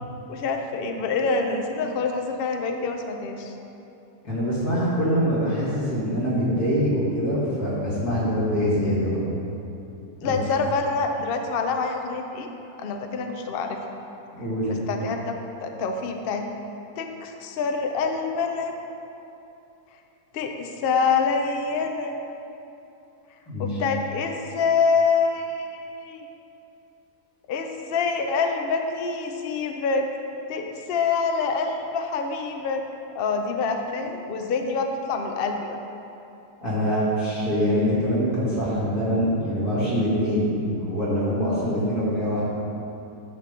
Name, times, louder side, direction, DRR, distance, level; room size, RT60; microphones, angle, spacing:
voice 1, 0.3-3.5 10.2-12.5 12.8-13.8 14.7-16.5 17.0-18.8 20.3-22.2 23.6-26.2 27.5-30.1 30.5-32.8 33.1-35.8, left 4 dB, 60° left, 4 dB, 0.6 m, -26 dB
voice 2, 4.2-9.2 10.2-10.4 14.4-14.8 23.5-23.7 36.6-42.4, equal, 75° left, -9 dB, 2.8 m, -24 dB
9.8 x 3.7 x 6.7 m, 2.8 s
omnidirectional pair, 1.6 m